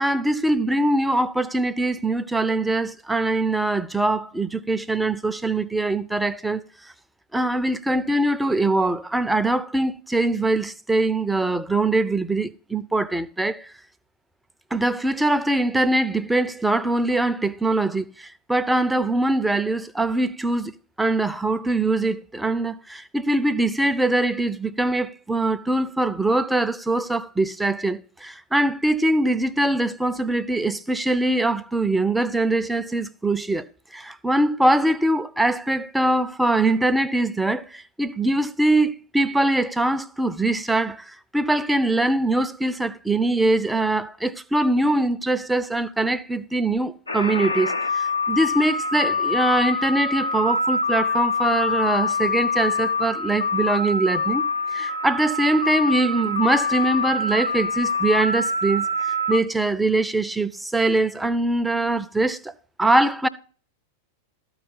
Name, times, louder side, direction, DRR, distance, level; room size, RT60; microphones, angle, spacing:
voice 1, 0.0-6.6 7.3-13.7 14.7-20.7 21.0-33.6 33.9-58.9 59.3-62.5 62.8-63.3, right 2 dB, 5° right, 0.5 m, -22 dB
sound 1, 47.1-59.4, left 3 dB, 80° left, 0.8 m, -25 dB
13.0 x 4.8 x 4.0 m
figure-of-eight pair, 90°, 0 cm